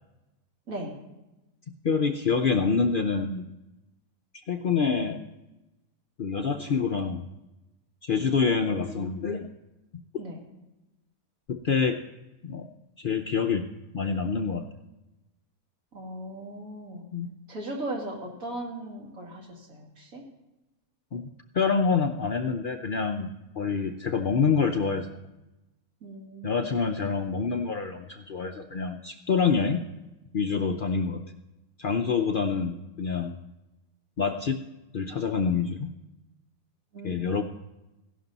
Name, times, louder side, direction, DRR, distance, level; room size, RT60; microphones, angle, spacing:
voice 1, 1.8-3.5 4.5-5.2 6.2-7.2 8.0-9.5 11.5-12.0 12.4-12.7 13.0-13.7 13.9-14.7 17.1-17.3 21.1-25.1 26.4-29.8 30.3-31.2 31.8-33.4 34.2-34.6 34.9-35.9 37.0-37.4, left 5 dB, 80° left, 4 dB, 0.4 m, -26 dB
voice 2, 15.9-17.0 17.5-20.2 26.0-26.7 36.9-37.2, right 1 dB, 55° right, -1 dB, 2.7 m, -38 dB
15.5 x 11.5 x 4.0 m, 0.99 s
omnidirectional pair, 1.7 m